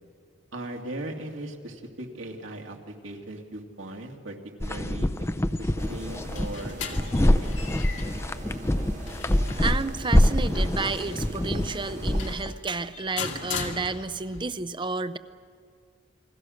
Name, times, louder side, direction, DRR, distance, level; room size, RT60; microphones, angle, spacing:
voice 1, 0.5-5.1 5.6-7.5, right 1 dB, 85° right, 2 dB, 2.5 m, -39 dB
sound 1, 4.6-12.5, left 1 dB, 15° left, 0.6 m, -25 dB
sound 2, 5.8-12.4, right 1 dB, 40° right, 1.5 m, -41 dB
sound 3, 6.0-14.4, left 5 dB, 75° left, 2.3 m, -39 dB
voice 2, 9.5-15.2, right 4 dB, 25° right, 13 dB, 0.6 m, -31 dB
29.5 x 21.0 x 6.5 m, 2.1 s
head